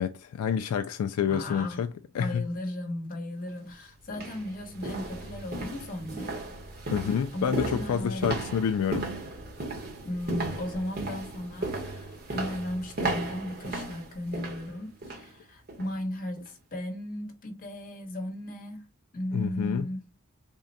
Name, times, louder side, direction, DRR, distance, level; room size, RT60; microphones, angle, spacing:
voice 1, 0.0-1.9 2.1-2.4 6.9-9.1 19.3-19.9, left 7 dB, 75° left, 0.3 m, -28 dB
voice 2, 1.2-1.8 2.2-6.3 7.3-8.3 10.0-18.8 19.1-20.0, left 1 dB, 40° left, 1.0 m, -36 dB
sound 1, 3.4-3.5 4.1-15.3 15.7-15.9 16.4-16.5, right 2 dB, 45° right, 1.0 m, -36 dB
3.6 x 2.1 x 4.0 m
head